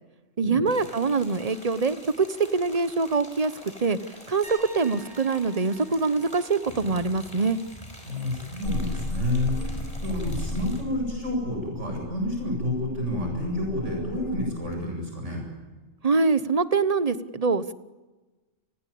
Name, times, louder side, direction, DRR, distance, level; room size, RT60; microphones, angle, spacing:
voice 1, 0.4-2.3 2.5-3.5 3.8-4.0 4.3-4.5 4.7-7.6 16.0-17.7, right 4 dB, 30° right, 14 dB, 1.0 m, -24 dB
sound 1, 0.7-10.8, equal, 30° left, 5.9 m, -44 dB
sound 2, 4.4-8.2 8.5-8.9 11.7-11.8, right 3 dB, 5° left, 7.2 m, -50 dB
voice 2, 8.1-9.7 10.0-15.4, left 1 dB, 70° right, 0 dB, 7.9 m, -29 dB
sound 3, 8.6-14.5, left 2 dB, 80° left, 5.2 m, -34 dB
29.5 x 20.0 x 8.6 m, 1.2 s
omnidirectional pair, 1.3 m